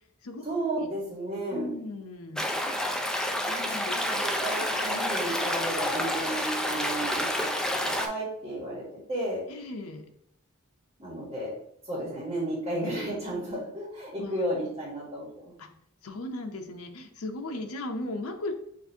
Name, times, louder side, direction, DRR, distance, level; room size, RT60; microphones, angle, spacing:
voice 1, 0.4-1.7 3.9-7.3 7.8-8.8 9.1-9.4 11.0-11.5 11.8-15.5, right 1 dB, 25° right, -4 dB, 1.3 m, -33 dB
voice 2, 1.5-2.4 3.4-4.0 9.5-10.1 14.2-14.3 15.6-15.7 16.0-18.5, left 2 dB, 90° left, 5 dB, 0.7 m, -37 dB
Stream, 2.4-8.1, left 1 dB, 5° left, 0.3 m, -29 dB
6.6 x 2.6 x 2.7 m, 0.68 s
head